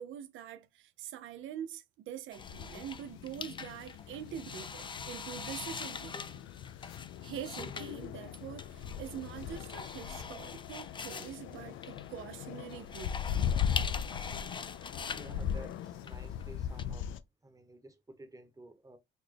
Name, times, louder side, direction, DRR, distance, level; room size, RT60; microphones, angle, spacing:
voice 1, 0.0-6.4 7.2-13.5, right 10 dB, 80° right, 0.5 m, -44 dB
sound 1, 2.3-16.8, left 5 dB, 25° left, 0.4 m, -43 dB
sound 2, 2.4-17.2, left 8 dB, 85° left, 0.4 m, -39 dB
voice 2, 15.1-17.1 17.4-19.0, right 1 dB, 15° right, 0.9 m, -52 dB
4.1 x 2.2 x 3.2 m
cardioid pair, 90°, 20 cm